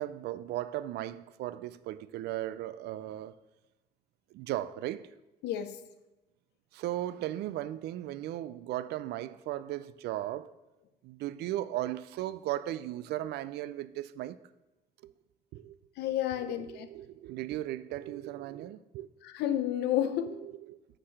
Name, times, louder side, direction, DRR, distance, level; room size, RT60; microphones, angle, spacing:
voice 1, 0.0-3.4 4.3-5.1 6.7-10.5 11.0-14.4 15.0-15.1 15.5-15.8 16.3-19.1 20.3-20.8, right 14 dB, 75° right, 0.4 m, -37 dB
voice 2, 5.4-5.8 16.0-16.9 19.2-20.4, left 11 dB, 80° left, 0.7 m, -31 dB
6.7 x 5.7 x 6.4 m
cardioid pair, 110°, 17 cm